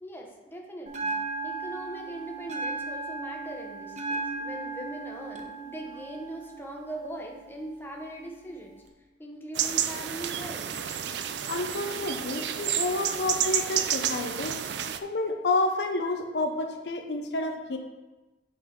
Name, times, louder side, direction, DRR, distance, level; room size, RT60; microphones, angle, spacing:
voice 1, 0.0-8.8 9.2-10.7 11.9-12.2, right 1 dB, 10° left, 0 dB, 0.9 m, -41 dB
Bell, 0.9-8.9, right 3 dB, 40° right, 0.8 m, -37 dB
sound 1, 9.5-15.0, right 9 dB, 70° right, 0.4 m, -30 dB
voice 2, 11.5-14.6 15.0-17.8, left 2 dB, 70° left, 5 dB, 0.6 m, -29 dB
7.7 x 5.5 x 3.7 m, 1.1 s
head